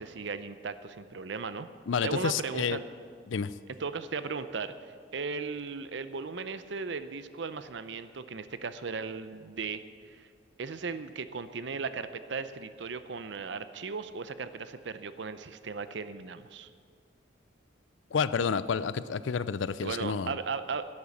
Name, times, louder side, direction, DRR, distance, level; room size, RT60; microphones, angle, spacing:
voice 1, 0.0-1.7 2.0-2.8 3.8-10.3 10.6-16.7 19.8-20.9, right 4 dB, 65° right, 12 dB, 0.6 m, -37 dB
voice 2, 1.9-2.8 3.3-3.5 18.1-20.3, left 6 dB, 75° left, 16 dB, 0.5 m, -29 dB
11.0 x 10.5 x 7.1 m, 2.1 s
head